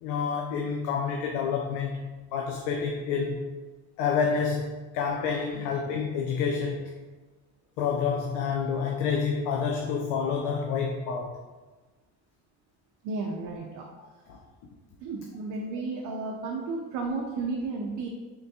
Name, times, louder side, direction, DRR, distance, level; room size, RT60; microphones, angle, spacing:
voice 1, 0.0-3.5 4.0-6.9 7.8-11.3 14.0-14.4, left 6 dB, 75° left, 1 dB, 0.5 m, -29 dB
voice 2, 13.0-13.8 15.0-18.1, right 3 dB, 70° right, -1 dB, 0.6 m, -33 dB
3.7 x 3.4 x 2.7 m, 1.3 s
cardioid pair, 145°, 30 cm